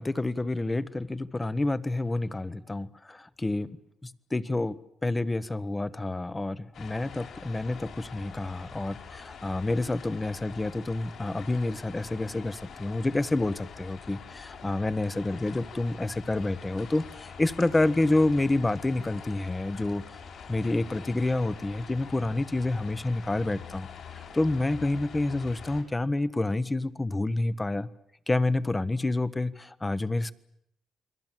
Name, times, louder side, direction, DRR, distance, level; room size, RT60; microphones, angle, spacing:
voice 1, 0.0-3.7 4.0-20.2 20.5-23.9 24.1-27.9 28.3-30.3, left 2 dB, 15° left, 1.2 m, -28 dB
sound 1, 6.7-25.8, left 6 dB, 70° left, 5.8 m, -45 dB
29.0 x 22.5 x 7.6 m
cardioid pair, 90°, 0 cm